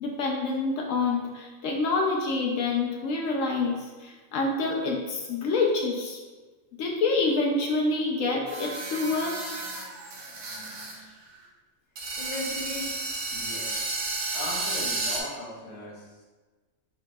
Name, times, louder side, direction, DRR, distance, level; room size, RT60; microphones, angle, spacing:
voice 1, 0.0-6.2 6.8-9.5, left 3 dB, 70° left, -1 dB, 0.9 m, -27 dB
sound 1, 8.5-11.0 11.2-11.3 12.0-15.2, right 2 dB, 80° right, 1.3 m, -32 dB
voice 2, 12.2-12.9 13.3-14.1 14.3-16.2, left 1 dB, 25° left, -4 dB, 0.8 m, -38 dB
4.6 x 4.5 x 2.3 m, 1.3 s
omnidirectional pair, 1.4 m